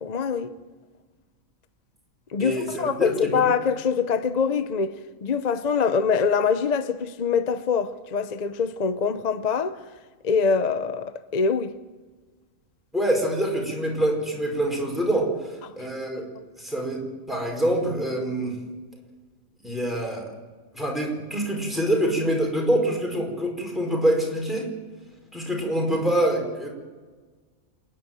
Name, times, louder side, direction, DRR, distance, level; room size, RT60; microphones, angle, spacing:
voice 1, 0.0-0.5 2.3-4.9 5.2-9.8 10.2-11.7 15.6-15.7, left 6 dB, 40° left, 0.7 m, -24 dB
voice 2, 2.4-3.4 12.9-16.3 16.6-18.5 19.6-20.3 20.7-24.7 25.3-26.7, right 1 dB, ahead, 4.9 m, -25 dB
27.5 x 11.0 x 9.1 m
omnidirectional pair, 1.4 m